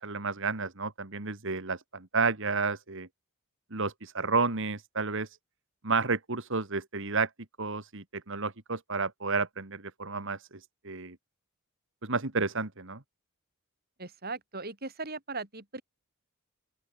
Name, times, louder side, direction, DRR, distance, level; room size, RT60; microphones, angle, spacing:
voice 1, 0.0-3.1 3.7-5.4 5.8-7.3 7.6-11.2 12.0-13.0, right 4 dB, 60° right, 2.2 m, -31 dB
voice 2, 14.0-15.8, right 3 dB, 45° right, 5.7 m, -38 dB
open air
head